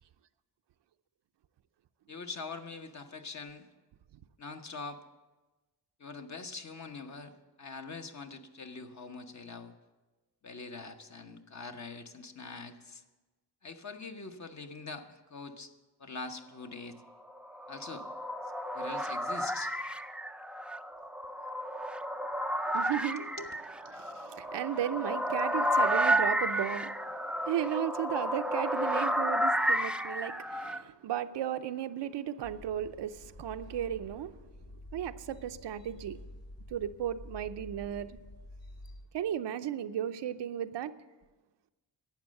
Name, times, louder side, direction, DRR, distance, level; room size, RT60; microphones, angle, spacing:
voice 1, 2.1-3.7 4.4-5.0 6.0-9.7 10.4-13.0 13.6-15.7 16.0-17.0 17.7-18.1 18.7-19.7 23.2-23.5, left 4 dB, 40° left, 6 dB, 1.1 m, -43 dB
sound 1, 17.4-30.8, equal, 5° right, 0.4 m, -32 dB
voice 2, 22.7-23.5 23.9-34.3 34.9-36.2 36.7-38.2 39.1-41.0, right 10 dB, 80° right, 10 dB, 0.7 m, -35 dB
sound 2, 32.4-39.0, left 1 dB, 60° left, 2.8 m, -49 dB
12.0 x 8.5 x 7.6 m, 1.2 s
cardioid pair, 95°, 42 cm